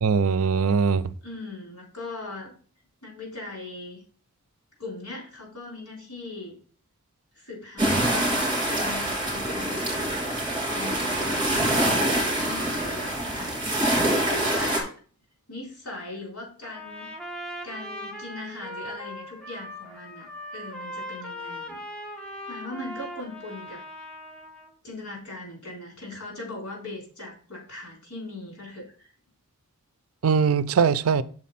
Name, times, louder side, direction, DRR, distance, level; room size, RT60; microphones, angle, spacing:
voice 1, 0.0-1.0 30.2-31.2, right 6 dB, 70° right, 0.4 m, -21 dB
voice 2, 1.2-2.5 3.0-4.0 4.8-6.6 7.4-10.2 10.6-13.6 14.3-14.9 15.5-17.1 17.6-20.3 20.5-21.9 22.5-23.8 24.8-29.1, left 2 dB, 75° left, 4.0 m, -39 dB
sound 1, 7.8-14.8, right 1 dB, 20° right, 2.9 m, -25 dB
Trumpet, 16.6-24.7, equal, 5° left, 1.1 m, -39 dB
6.4 x 4.2 x 5.7 m
head